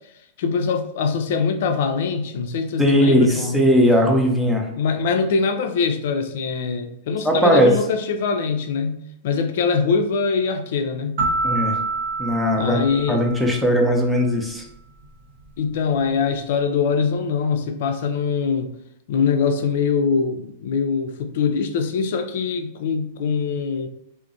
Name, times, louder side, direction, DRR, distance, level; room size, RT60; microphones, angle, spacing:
voice 1, 0.4-3.7 4.8-11.2 12.6-13.2 15.6-18.7 19.1-23.9, left 5 dB, 60° left, 0.3 m, -23 dB
voice 2, 2.8-4.7 7.2-7.7 11.4-11.7 12.2-12.8 13.1-14.6, equal, 5° right, 0.5 m, -18 dB
sound 1, 11.2-13.9, right 3 dB, 70° right, 0.7 m, -26 dB
2.5 x 2.0 x 2.5 m
hypercardioid pair, 100°, 0 cm